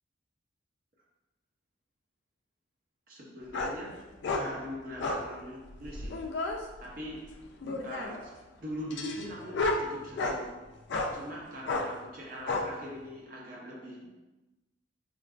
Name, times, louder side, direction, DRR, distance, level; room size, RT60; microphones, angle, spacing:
voice 1, 3.1-6.2 6.8-7.3 7.8-10.5 11.1-14.1, equal, 45° right, -3 dB, 0.6 m, -42 dB
sound 1, 3.5-3.8 4.2-4.5 5.0-5.3 5.8-6.6 7.6-8.2 8.9-10.4 10.9-11.1 11.7-11.9 12.5-12.7, left 2 dB, 60° left, 0.3 m, -31 dB
3.7 x 2.3 x 2.4 m, 1.1 s
head